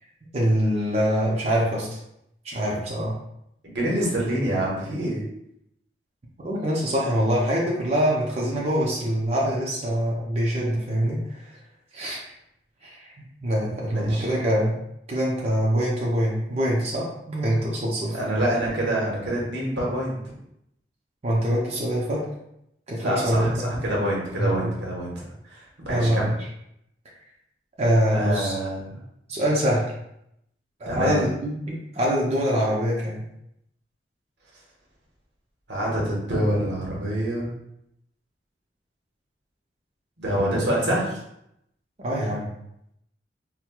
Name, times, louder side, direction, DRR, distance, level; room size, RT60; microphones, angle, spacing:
voice 1, 0.3-2.0 2.4-3.2 6.4-11.5 11.9-12.2 12.8-13.1 13.4-14.8 15.1-18.1 21.2-22.2 22.9-23.7 24.4-24.7 25.9-26.3 27.8-28.5 29.3-29.9 30.8-33.2 42.0-42.5, equal, 40° right, -4 dB, 0.5 m, -24 dB
voice 2, 3.7-5.2 13.9-14.3 18.1-20.2 23.0-25.1 25.5-26.3 28.1-28.9 30.9-31.3 35.7-37.5 40.2-41.2, right 1 dB, 80° right, -3 dB, 1.0 m, -26 dB
4.4 x 2.1 x 2.2 m, 0.78 s
head